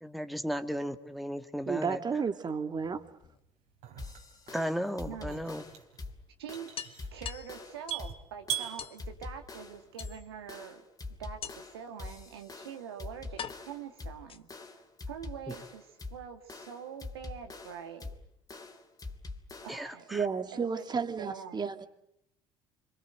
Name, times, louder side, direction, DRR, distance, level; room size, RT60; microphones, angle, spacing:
voice 1, 0.0-2.0 4.5-5.6 19.7-20.3, equal, ahead, 2.0 m, -35 dB
voice 2, 1.7-3.0 20.1-21.9, right 5 dB, 35° right, 2.5 m, -32 dB
sound 1, 2.7-3.8 5.3-5.4 5.8-5.9 6.2-6.3 6.8-8.2 8.8-9.0 10.0-10.5 11.4-11.8 12.7-12.8 13.4-14.7, left 8 dB, 45° left, 1.5 m, -44 dB
sound 2, 2.9-10.4, right 11 dB, 70° right, 3.8 m, -43 dB
sound 3, 4.0-19.9, left 3 dB, 30° left, 3.1 m, -45 dB
voice 3, 5.0-5.4 6.4-6.7 7.1-10.8 11.2-14.5 14.7-18.1 19.6-20.0 20.5-20.8 21.2-21.6, right 8 dB, 85° right, 2.2 m, -44 dB
27.0 x 23.0 x 7.8 m
hypercardioid pair, 60°, 13 cm